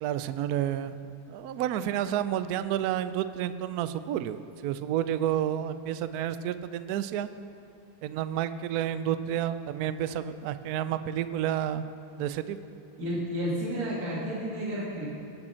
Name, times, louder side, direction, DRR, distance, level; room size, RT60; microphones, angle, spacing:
voice 1, 0.0-1.0 1.3-7.3 8.0-11.8 12.2-12.6, right 10 dB, 85° right, 12 dB, 0.8 m, -30 dB
voice 2, 13.0-15.1, equal, 45° right, -6 dB, 2.6 m, -31 dB
19.5 x 8.7 x 4.4 m, 2.4 s
omnidirectional pair, 2.2 m